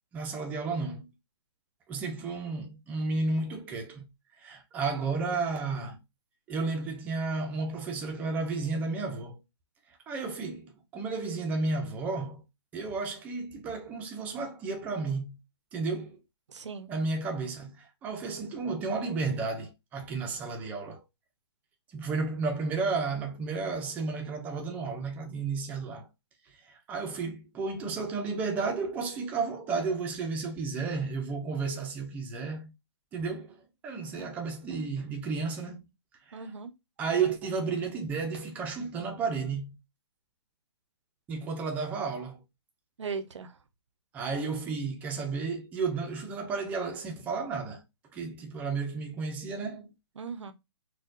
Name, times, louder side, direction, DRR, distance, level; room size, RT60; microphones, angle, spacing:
voice 1, 0.1-1.1 1.9-4.1 4.4-6.0 6.5-9.4 10.1-12.4 12.7-15.4 15.7-16.2 16.9-21.0 21.9-26.1 26.6-32.7 33.1-35.9 36.3-36.5 37.0-39.8 41.3-42.4 44.1-47.8 48.1-49.9, right 4 dB, 10° right, 0.5 m, -32 dB
voice 2, 16.5-16.9 34.0-34.3 36.3-36.7 43.0-43.5 50.2-50.5, right 5 dB, 85° right, 0.8 m, -38 dB
4.2 x 2.3 x 2.6 m
hypercardioid pair, 165°, 15 cm